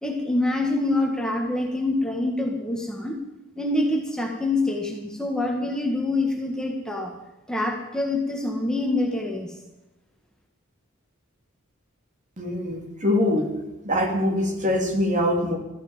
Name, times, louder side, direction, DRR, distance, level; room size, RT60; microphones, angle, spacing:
voice 1, 0.0-3.2 3.5-7.1 7.5-9.5, left 2 dB, 5° left, 0 dB, 1.7 m, -25 dB
voice 2, 12.4-13.5 13.8-15.6, left 1 dB, 40° right, 3 dB, 2.6 m, -23 dB
14.5 x 9.0 x 8.8 m, 1.0 s
head